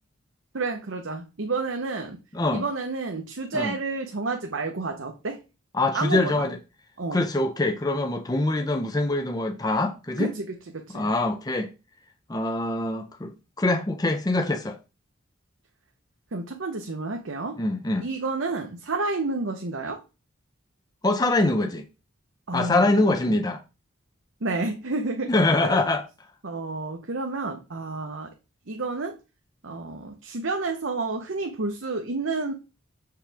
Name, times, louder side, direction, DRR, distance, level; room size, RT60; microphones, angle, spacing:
voice 1, 0.5-2.2 2.5-5.4 5.9-6.5 7.0-7.2 10.2-10.5 10.7-11.1 16.3-17.6 18.0-20.0 22.5-23.2 24.4-25.3 25.6-25.9 26.4-28.3 28.7-29.2 29.6-32.5, right 3 dB, 75° right, 0.8 m, -30 dB
voice 2, 2.3-2.7 3.5-3.7 5.7-6.6 7.1-10.3 10.9-11.7 12.3-13.3 13.6-14.8 17.6-18.1 21.0-21.8 22.5-23.6 25.3-26.0, left 2 dB, 20° left, 0.5 m, -24 dB
7.1 x 4.8 x 3.4 m
head